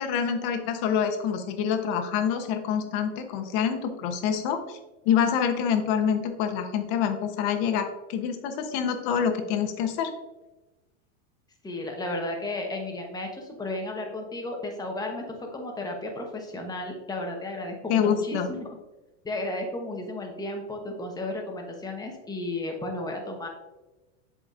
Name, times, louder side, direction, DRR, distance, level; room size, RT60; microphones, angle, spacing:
voice 1, 0.0-4.8 5.0-10.1 17.9-18.5, left 7 dB, 55° left, 7 dB, 1.0 m, -26 dB
voice 2, 11.6-18.7 19.2-23.5, left 2 dB, 10° left, 2 dB, 1.0 m, -33 dB
7.8 x 5.1 x 2.5 m, 1.1 s
supercardioid pair, 145°, 37 cm